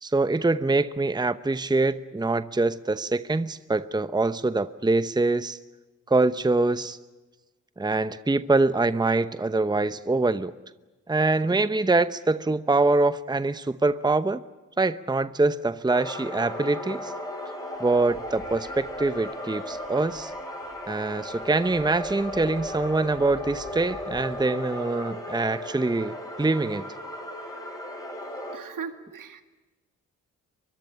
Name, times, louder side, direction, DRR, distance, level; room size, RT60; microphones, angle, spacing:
voice 1, 0.0-5.6 6.1-7.0 7.8-10.5 11.1-14.4 14.8-17.1 17.8-20.3 20.9-26.9, right 3 dB, 10° right, 13 dB, 0.9 m, -24 dB
sound 1, 15.9-28.6, left 1 dB, 10° left, 7.3 m, -36 dB
Wind, 17.7-24.4, left 4 dB, 80° left, 5.7 m, -50 dB
voice 2, 28.5-29.4, right 6 dB, 70° right, 8 dB, 2.1 m, -38 dB
23.5 x 22.5 x 8.7 m, 1.2 s
supercardioid pair, 45°, 33 cm